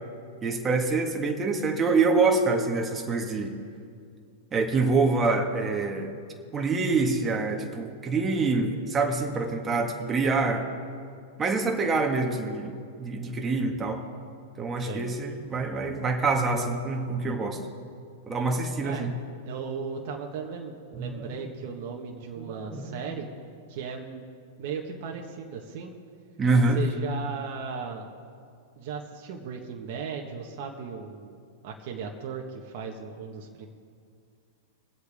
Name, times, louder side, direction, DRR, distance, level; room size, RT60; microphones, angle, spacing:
voice 1, 0.4-3.5 4.5-6.1 6.5-10.6 11.4-12.7 13.0-14.0 14.6-17.6 18.3-19.1 21.0-21.5 22.4-23.0 26.4-26.8, right 3 dB, 20° right, 2 dB, 2.0 m, -26 dB
voice 2, 19.5-23.3 23.7-24.2 24.6-25.9 26.7-28.1 28.7-31.4 31.6-33.7, right 6 dB, 55° right, 0 dB, 1.5 m, -36 dB
23.0 x 8.1 x 3.7 m, 2.3 s
hypercardioid pair, 110°, 0 cm